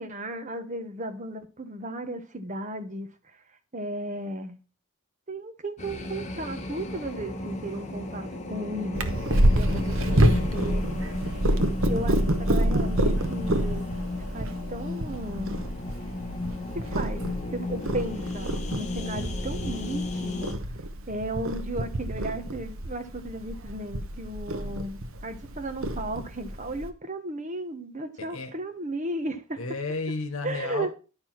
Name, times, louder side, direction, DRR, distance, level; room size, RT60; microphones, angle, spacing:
voice 1, 0.0-3.1 3.7-4.6 5.3-10.8 11.6-13.9 14.3-15.6 16.7-17.2 17.5-20.6 21.1-29.6 30.4-30.9, right 1 dB, 35° right, 1.1 m, -35 dB
sound 1, 5.8-20.5, left 2 dB, 35° left, 1.2 m, -34 dB
Purr, 8.9-26.9, right 1 dB, 70° right, 1.0 m, -28 dB
voice 2, 10.0-10.8 24.6-24.8 28.2-28.6 29.6-30.9, left 3 dB, 80° left, 1.1 m, -33 dB
11.0 x 4.6 x 5.8 m
head